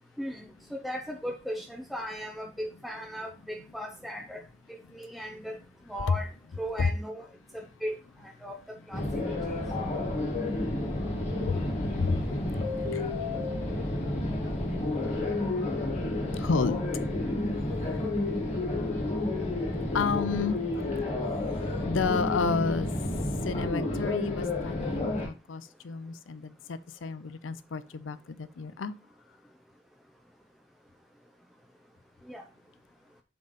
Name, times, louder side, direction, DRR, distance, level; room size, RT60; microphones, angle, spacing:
voice 1, 0.7-4.4 4.7-5.6 5.9-6.3 6.6-7.3 7.5-8.0 8.4-9.0 32.3-32.4, equal, ahead, 0.6 m, -37 dB
sound 1, 8.9-25.3, left 2 dB, 35° left, 1.7 m, -30 dB
voice 2, 9.5-10.0 10.4-10.5 11.5-12.3 12.6-13.0 16.4-16.8 19.9-20.9 21.9-22.9 23.4-28.9, left 4 dB, 85° left, 0.5 m, -31 dB
6.9 x 3.9 x 4.1 m
head